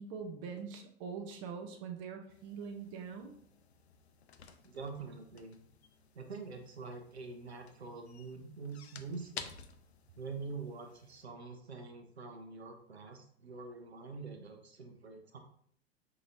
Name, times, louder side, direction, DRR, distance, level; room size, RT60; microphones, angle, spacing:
voice 1, 0.0-3.4, right 6 dB, 30° right, 4 dB, 0.5 m, -43 dB
sound 1, 2.3-11.2, left 7 dB, 75° left, 0.5 m, -53 dB
voice 2, 4.6-5.6 6.1-9.5 10.2-15.4, right 4 dB, 75° right, 4 dB, 0.8 m, -45 dB
4.9 x 2.9 x 2.5 m, 0.64 s
figure-of-eight pair, 95°, 32 cm